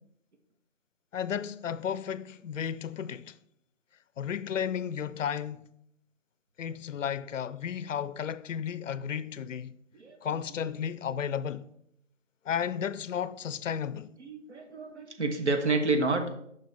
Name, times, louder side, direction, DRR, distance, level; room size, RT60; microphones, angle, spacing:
voice 1, 1.1-3.4 4.2-5.7 6.6-9.8 10.2-11.7 12.5-14.1, left 8 dB, 75° left, 0.5 m, -33 dB
voice 2, 14.2-16.2, right 3 dB, 60° right, 1.2 m, -29 dB
6.5 x 5.7 x 3.4 m
figure-of-eight pair, 175°, 38 cm